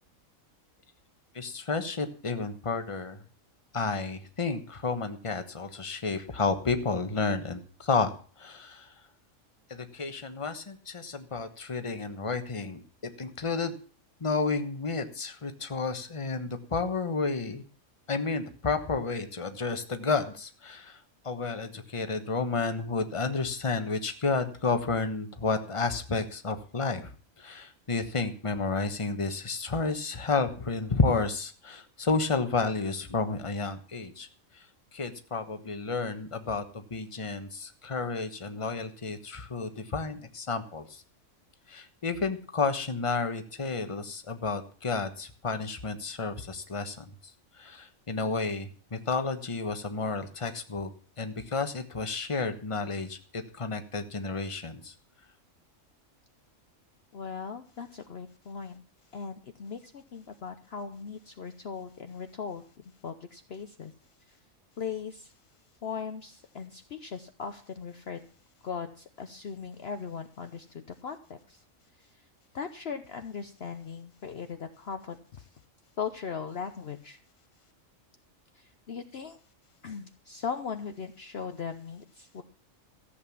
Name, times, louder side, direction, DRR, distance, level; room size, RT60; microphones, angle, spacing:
voice 1, 1.3-3.2 3.7-8.1 8.4-8.9 9.7-13.7 14.2-17.6 18.1-21.0 21.2-27.1 27.4-34.3 34.5-34.6 34.9-41.0 41.7-47.1 47.6-50.9 51.2-54.9, left 4 dB, 25° left, 8 dB, 1.2 m, -31 dB
voice 2, 57.1-58.8 59.1-63.9 64.3-64.4 64.8-65.3 65.8-68.2 68.6-71.6 72.0-72.1 72.5-75.5 76.0-77.2 78.5-79.4 79.8-82.4, left 6 dB, 55° left, 8 dB, 1.0 m, -39 dB
14.5 x 8.1 x 7.2 m, 0.41 s
omnidirectional pair, 1.4 m